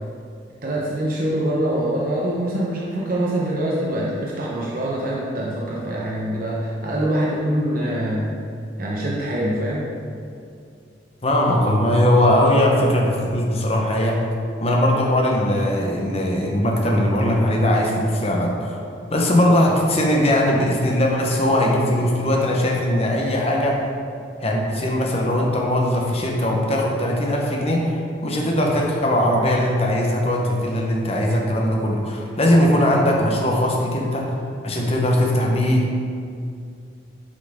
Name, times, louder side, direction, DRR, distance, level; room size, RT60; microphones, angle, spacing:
voice 1, 0.6-8.3 8.8-9.9, right 1 dB, 45° right, -5 dB, 0.9 m, -24 dB
voice 2, 11.2-14.2 14.6-18.8 19.1-23.8 24.4-34.4 34.6-35.9, left 1 dB, 30° left, -1 dB, 1.0 m, -20 dB
8.0 x 5.8 x 3.6 m, 2.4 s
head